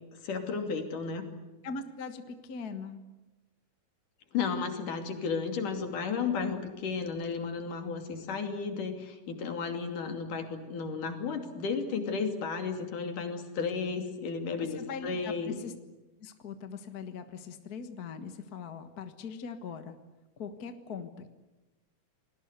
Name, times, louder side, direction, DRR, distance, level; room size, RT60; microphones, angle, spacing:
voice 1, 0.2-1.3 4.3-15.6, left 5 dB, 80° left, 5 dB, 4.3 m, -33 dB
voice 2, 1.6-3.0 14.7-15.7 16.2-20.0 20.4-21.3, left 5 dB, 45° left, 8 dB, 1.3 m, -41 dB
29.5 x 20.0 x 8.2 m, 1.1 s
omnidirectional pair, 3.6 m